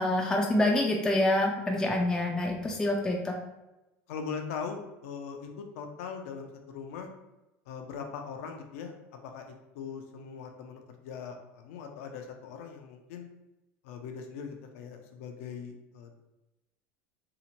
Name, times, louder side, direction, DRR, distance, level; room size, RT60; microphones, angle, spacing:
voice 1, 0.0-3.4, left 1 dB, 10° left, 1 dB, 0.3 m, -26 dB
voice 2, 4.1-7.1 7.7-13.3 13.8-16.3, left 6 dB, 75° left, 4 dB, 0.4 m, -41 dB
2.7 x 2.1 x 2.8 m, 0.97 s
supercardioid pair, 110°, 7 cm